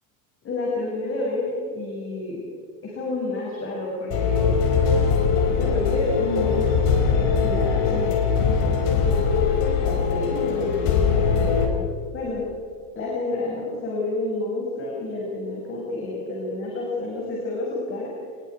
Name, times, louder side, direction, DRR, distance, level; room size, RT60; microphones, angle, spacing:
voice 1, 0.4-2.4 2.8-4.5 5.5-6.9 7.4-9.2 9.8-11.8 12.1-12.4 12.9-18.1, left 2 dB, 30° left, -3 dB, 6.1 m, -29 dB
sound 1, 4.1-11.7, left 6 dB, 55° left, 4.8 m, -21 dB
28.0 x 20.5 x 4.8 m, 2.2 s
supercardioid pair, 140°, 42 cm